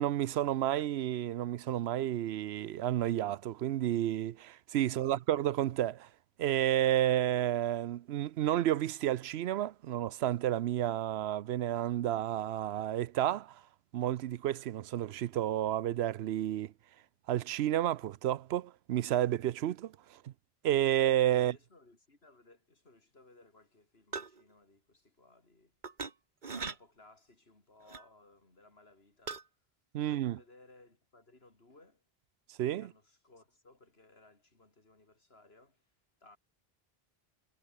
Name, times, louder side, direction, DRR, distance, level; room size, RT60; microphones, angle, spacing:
voice 1, 0.0-6.1 6.4-13.6 13.9-16.7 17.3-20.3 20.6-21.5 29.9-30.4 32.5-32.9, right 12 dB, 85° right, 0.9 m, -31 dB
voice 2, 4.8-5.3 21.4-25.8 26.5-29.5 30.0-32.0 32.7-35.9 36.2-36.4, left 2 dB, 80° left, 4.1 m, -61 dB
sound 1, 24.1-24.4 25.8-26.1 26.4-26.8 27.9-28.1 29.3-29.4, right 4 dB, 50° right, 1.5 m, -39 dB
omnidirectional pair, 1.0 m